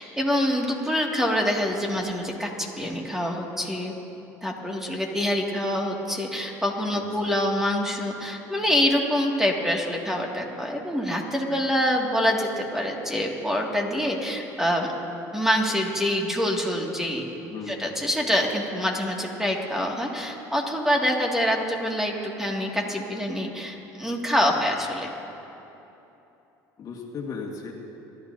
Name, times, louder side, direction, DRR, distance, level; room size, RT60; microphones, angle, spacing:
voice 1, 0.0-3.9 4.4-14.9 15.3-17.2 17.7-25.1, equal, 5° right, 0 dB, 2.1 m, -26 dB
voice 2, 6.9-7.4 17.5-17.9 24.5-24.7 26.8-27.7, left 5 dB, 45° left, 0 dB, 1.9 m, -37 dB
26.0 x 12.0 x 2.7 m, 3.0 s
supercardioid pair, 85°, 9 cm